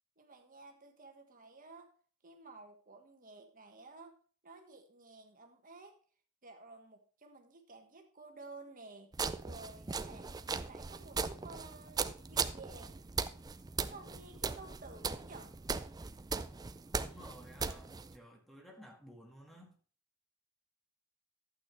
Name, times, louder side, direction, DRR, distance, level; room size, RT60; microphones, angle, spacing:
voice 1, 0.2-1.9 2.2-4.2 4.4-6.0 6.4-9.1 9.4-10.4 10.7-13.1 13.8-15.6, right 3 dB, 40° right, 4 dB, 1.5 m, -53 dB
sound 1, 9.1-18.2, right 5 dB, 15° right, 0.4 m, -39 dB
voice 2, 16.9-19.8, equal, ahead, 1 dB, 1.8 m, -55 dB
12.0 x 8.6 x 3.3 m, 0.41 s
head